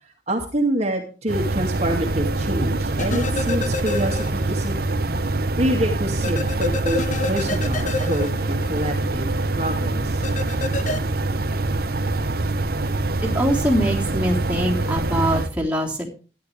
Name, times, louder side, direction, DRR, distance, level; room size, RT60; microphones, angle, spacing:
voice 1, 0.3-4.7 5.6-9.3 9.6-10.3, right 1 dB, 35° right, 1 dB, 2.2 m, -26 dB
sound 1, 1.3-15.5, right 2 dB, 60° right, 0.9 m, -24 dB
sound 2, 3.0-4.7 5.0-5.1 6.2-9.0 10.2-11.0, left 3 dB, 45° left, 1.0 m, -29 dB
voice 2, 13.2-16.1, equal, 5° right, -3 dB, 3.4 m, -23 dB
13.5 x 11.0 x 3.3 m, 0.35 s
head